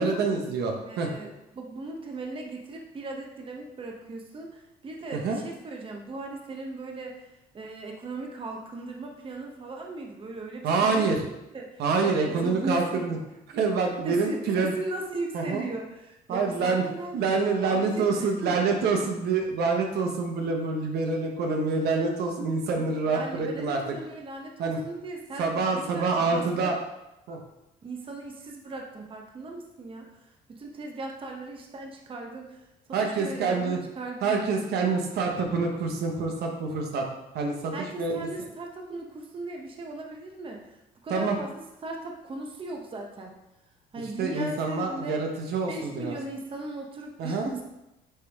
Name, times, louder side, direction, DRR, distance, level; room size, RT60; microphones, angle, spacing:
voice 1, 0.0-1.1 5.2-5.4 10.6-11.2 11.8-13.2 13.5-14.7 15.3-15.6 16.3-16.8 17.1-23.8 24.6-24.8 25.4-26.7 27.3-27.4 32.9-33.8 34.2-37.0 37.3-37.7 38.0-38.1 41.1-41.4 44.2-46.2 47.2-47.5, right 4 dB, 70° right, 2 dB, 1.1 m, -26 dB
voice 2, 0.8-11.2 11.5-13.0 14.0-17.2 17.6-18.5 23.1-26.8 27.8-30.1 30.5-32.6 33.0-34.4 37.7-40.7 41.0-43.3 43.9-45.2 45.7-47.6, right 2 dB, 30° right, 1 dB, 1.0 m, -38 dB
9.2 x 3.4 x 3.5 m, 0.91 s
cardioid pair, 110°, 17 cm